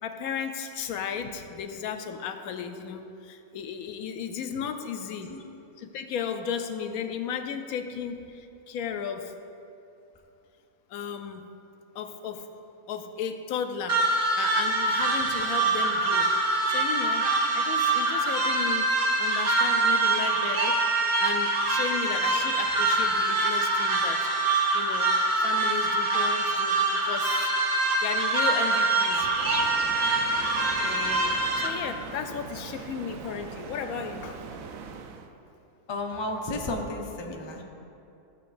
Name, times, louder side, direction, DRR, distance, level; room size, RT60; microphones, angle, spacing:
voice 1, 0.0-5.3 5.8-9.3 10.9-11.4 11.9-12.5 12.9-14.0 14.3-17.3 17.5-18.9 19.2-24.5 24.7-25.1 25.4-27.5 28.0-29.3 30.5-34.4, left 7 dB, 80° left, 7 dB, 1.0 m, -35 dB
sound 1, 13.9-31.7, right 2 dB, 50° right, 1.1 m, -25 dB
sound 2, 29.3-35.3, right 5 dB, 75° right, 1.0 m, -40 dB
voice 2, 35.9-37.6, left 2 dB, 30° left, 1 dB, 0.5 m, -32 dB
13.5 x 7.0 x 2.5 m, 2.7 s
omnidirectional pair, 1.5 m